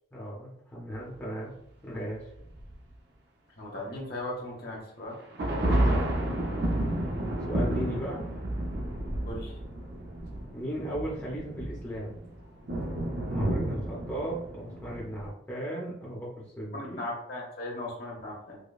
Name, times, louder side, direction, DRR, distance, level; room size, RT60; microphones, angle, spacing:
voice 1, 0.1-1.5 1.8-2.2 5.6-6.0 7.5-8.3 10.5-12.2 13.3-17.0, right 1 dB, 10° left, -6 dB, 0.7 m, -36 dB
sound 1, 2.6-2.8 5.2-15.3, right 1 dB, 55° right, 0.6 m, -31 dB
voice 2, 3.6-5.1 9.2-9.5 13.3-13.9 16.7-18.6, left 1 dB, 50° left, -2 dB, 1.0 m, -38 dB
4.9 x 2.2 x 2.3 m, 0.75 s
head